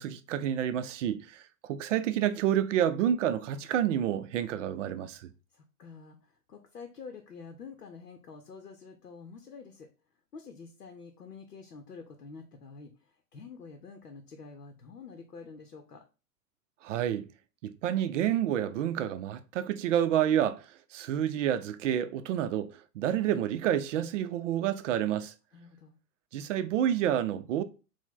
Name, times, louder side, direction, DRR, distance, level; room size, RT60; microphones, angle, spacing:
voice 1, 0.0-5.3 16.8-17.3 17.6-20.7 20.9-25.3 26.3-27.6, right 10 dB, 55° right, 0.5 m, -29 dB
voice 2, 5.5-9.9 10.3-16.0 25.5-26.0, left 5 dB, 90° left, 0.7 m, -48 dB
4.7 x 2.1 x 3.7 m
hypercardioid pair, 100°, 46 cm